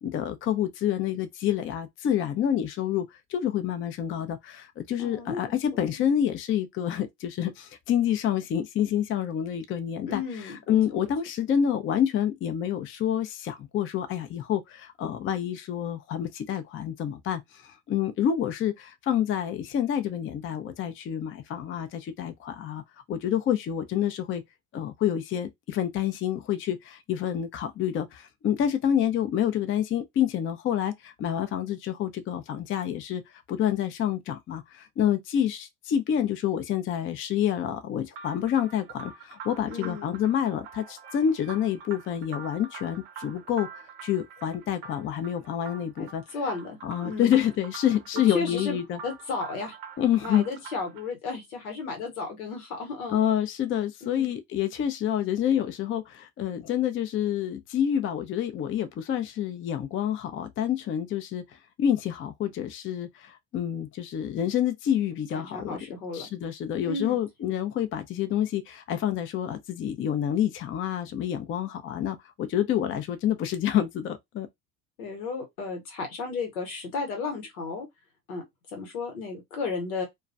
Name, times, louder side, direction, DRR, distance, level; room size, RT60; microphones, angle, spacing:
voice 1, 0.0-10.2 10.7-22.8 23.1-24.4 24.7-33.2 33.5-43.7 44.0-46.2 46.8-49.0 50.0-50.5 53.1-61.4 61.8-65.8 66.1-74.5, left 10 dB, 30° left, 0.4 m, -28 dB
voice 2, 5.0-5.4 6.0-6.1 10.1-10.6 10.9-11.0 39.7-40.1 46.0-47.4 48.1-48.8 49.0-49.8 50.2-53.2 54.0-54.3 65.3-66.3 66.8-67.2 75.0-77.9 78.3-78.4 78.7-80.0, left 4 dB, 85° left, 1.0 m, -34 dB
sound 1, 38.1-51.1, right 6 dB, 60° right, 0.7 m, -45 dB
2.3 x 2.2 x 2.5 m
hypercardioid pair, 70°, 42 cm